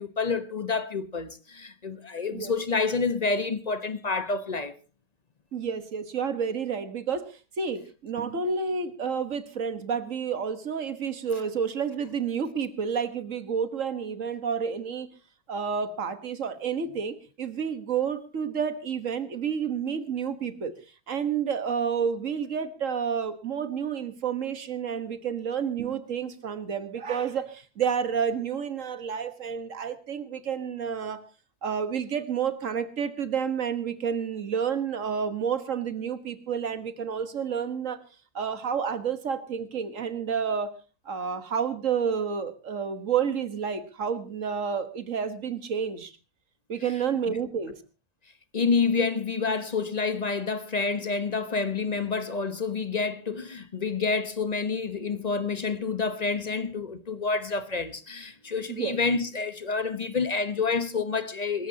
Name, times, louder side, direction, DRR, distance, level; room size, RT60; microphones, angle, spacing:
voice 1, 0.0-4.8 47.3-47.4 48.5-61.7, left 4 dB, 30° left, 1.0 m, -28 dB
voice 2, 5.5-7.3 7.6-15.1 15.5-20.7 21.1-31.2 31.6-38.0 38.4-40.7 41.1-46.1 46.7-47.7 58.7-59.0, right 7 dB, 55° right, 1.8 m, -30 dB
26.5 x 14.0 x 2.8 m
omnidirectional pair, 1.7 m